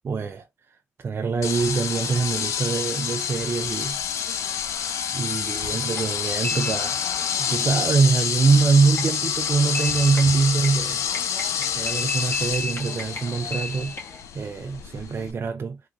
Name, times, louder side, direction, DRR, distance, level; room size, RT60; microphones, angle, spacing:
voice 1, 0.0-0.5 1.0-4.3 5.1-7.0 7.4-11.1 11.6-14.0 14.3-15.8, right 4 dB, 55° right, 0.5 m, -24 dB
sound 1, 1.4-15.3, left 8 dB, 90° left, 0.5 m, -28 dB
sound 2, 5.9-14.3, left 2 dB, 50° left, 1.9 m, -36 dB
3.7 x 2.9 x 2.3 m
supercardioid pair, 50°, 5 cm